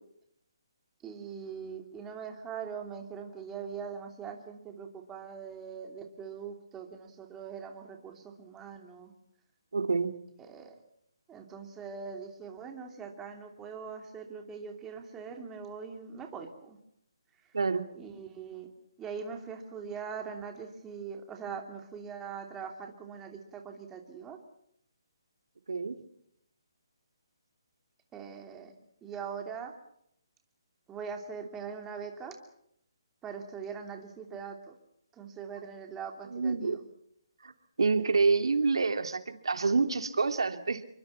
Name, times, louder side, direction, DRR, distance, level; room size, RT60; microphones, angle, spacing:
voice 1, 1.0-9.1 10.4-10.8 11.3-16.8 17.4-17.6 17.9-18.7 19.0-24.4 28.1-28.7 29.0-29.7 30.9-32.4 33.2-34.8 35.1-36.9, right 6 dB, 10° right, 4 dB, 2.9 m, -42 dB
voice 2, 9.7-10.1 17.5-17.9 25.7-26.0 36.3-36.8 37.4-37.5 37.8-40.8, right 4 dB, 85° right, 7 dB, 2.9 m, -27 dB
28.5 x 23.5 x 5.8 m, 0.72 s
hypercardioid pair, 165°, 3 cm